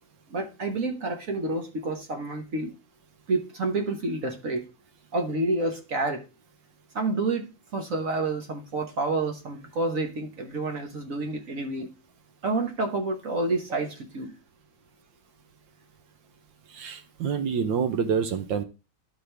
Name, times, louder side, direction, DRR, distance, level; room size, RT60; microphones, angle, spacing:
voice 1, 0.3-2.7 3.3-4.7 5.1-6.2 6.9-11.9 12.4-14.3, right 2 dB, 50° right, 4 dB, 1.3 m, -29 dB
voice 2, 16.7-18.6, right 6 dB, 75° right, 9 dB, 1.4 m, -27 dB
12.5 x 4.2 x 3.3 m, 0.29 s
omnidirectional pair, 2.1 m